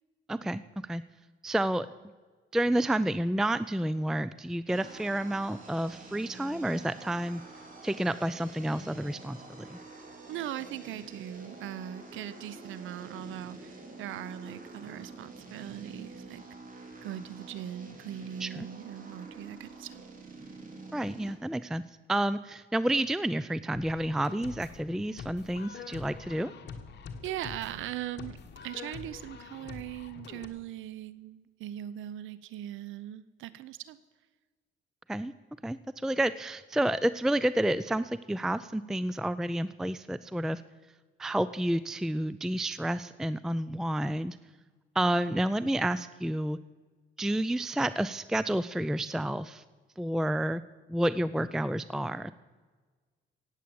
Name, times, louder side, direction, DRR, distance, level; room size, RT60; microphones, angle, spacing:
voice 1, 0.3-1.0 1.4-1.9 2.5-7.4 7.8-9.8 18.4-18.7 20.9-21.8 22.1-26.5 35.1-35.3 35.6-35.8 36.0-40.6 41.2-44.4 45.0-46.6 47.2-49.6 50.0-50.6 50.9-52.3, right 1 dB, ahead, 15 dB, 0.4 m, -30 dB
sound 1, 4.7-21.3, right 3 dB, 45° right, 3.6 m, -47 dB
voice 2, 10.3-16.4 17.0-20.1 27.2-34.0, right 11 dB, 85° right, 16 dB, 0.7 m, -40 dB
sound 2, 23.7-30.5, left 5 dB, 60° left, 1.6 m, -45 dB
17.0 x 8.3 x 7.7 m, 1.4 s
cardioid pair, 90°, 20 cm